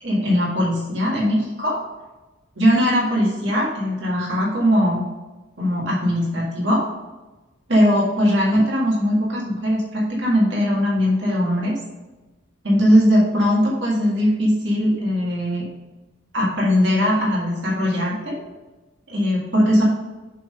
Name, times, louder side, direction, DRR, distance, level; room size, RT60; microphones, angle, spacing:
voice 1, 0.0-1.8 2.6-5.0 5.6-6.8 7.7-11.7 12.6-15.7 16.3-18.4 19.1-19.8, equal, 55° right, -4 dB, 1.9 m, -20 dB
7.5 x 3.8 x 5.6 m, 1.1 s
head